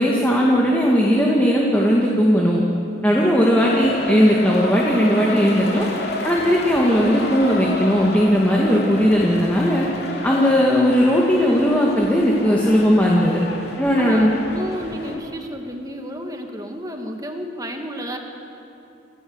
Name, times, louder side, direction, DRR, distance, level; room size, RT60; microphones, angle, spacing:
voice 1, 0.0-2.6 3.0-5.9 6.2-9.9 10.2-13.4 13.8-14.3, equal, 10° left, -3 dB, 2.1 m, -17 dB
sound 1, 3.6-15.2, left 1 dB, 55° left, 2.9 m, -31 dB
voice 2, 14.0-18.2, equal, 20° right, 3 dB, 2.0 m, -31 dB
29.5 x 16.0 x 8.0 m, 2.8 s
head